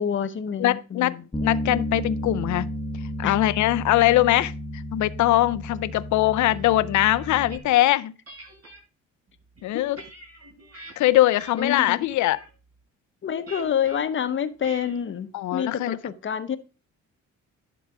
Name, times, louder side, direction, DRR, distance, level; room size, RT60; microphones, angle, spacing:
voice 1, 0.0-1.3 3.2-3.4 9.7-9.8 11.5-12.1 13.2-16.6, left 8 dB, 40° left, 0.8 m, -28 dB
voice 2, 0.6-1.1 1.4-2.7 3.2-8.1 9.6-10.0 11.0-12.4 15.3-16.0, left 15 dB, 70° left, 0.5 m, -21 dB
Bass guitar, 1.3-7.6, equal, 10° left, 1.1 m, -32 dB
sound 1, 6.5-7.7 8.3-8.8 9.4-10.9 11.4-11.8 12.1-12.5 13.5-14.0 14.6-15.0, right 2 dB, 50° right, 5.5 m, -45 dB
11.0 x 3.9 x 4.7 m
cardioid pair, 90°, 30 cm